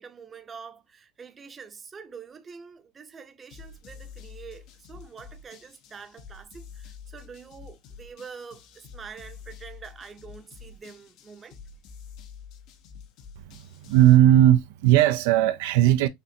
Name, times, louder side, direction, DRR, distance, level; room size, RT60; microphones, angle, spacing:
voice 1, 0.0-11.6, right 6 dB, 20° right, 0.7 m, -45 dB
sound 1, 3.5-14.2, left 6 dB, 50° left, 0.8 m, -47 dB
voice 2, 13.9-16.1, right 12 dB, 75° right, 0.5 m, -17 dB
6.5 x 2.5 x 2.7 m
supercardioid pair, 135°, 0 cm